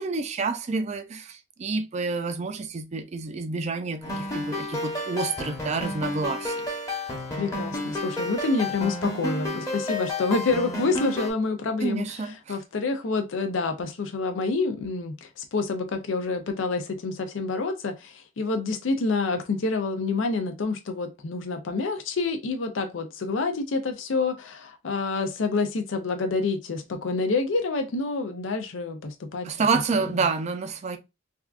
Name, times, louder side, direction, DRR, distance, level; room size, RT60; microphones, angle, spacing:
voice 1, 0.0-6.7 11.8-12.6 29.4-31.0, right 4 dB, 35° right, 0.4 m, -29 dB
sound 1, 4.0-11.3, left 1 dB, 15° left, 1.0 m, -31 dB
voice 2, 7.4-12.0 12.5-29.5, left 3 dB, 80° left, 0.5 m, -27 dB
3.4 x 2.4 x 2.3 m
head